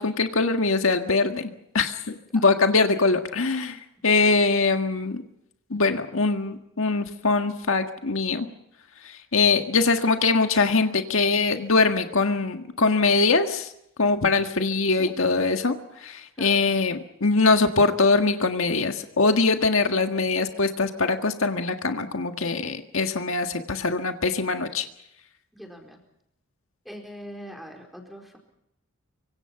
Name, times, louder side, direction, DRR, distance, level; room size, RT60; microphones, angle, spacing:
voice 1, 0.0-5.2 5.7-8.5 9.0-13.7 14.0-15.7 16.0-24.8, left 3 dB, 75° left, 6 dB, 1.7 m, -22 dB
voice 2, 25.5-26.0 26.8-28.4, equal, ahead, 1 dB, 4.4 m, -41 dB
25.0 x 25.0 x 5.8 m, 0.79 s
head